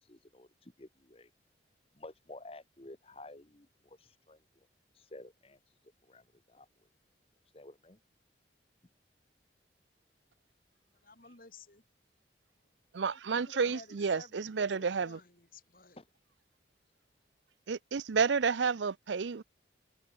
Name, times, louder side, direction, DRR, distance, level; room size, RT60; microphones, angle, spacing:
voice 1, 0.0-1.3 1.9-4.4 4.9-6.7 7.5-8.0 16.0-16.1, left 2 dB, 30° left, 1.2 m, -52 dB
voice 2, 11.0-11.8 13.1-13.2 13.5-16.0, left 3 dB, 50° left, 4.3 m, -54 dB
voice 3, 12.9-15.2 17.7-19.4, right 5 dB, 80° right, 0.6 m, -30 dB
head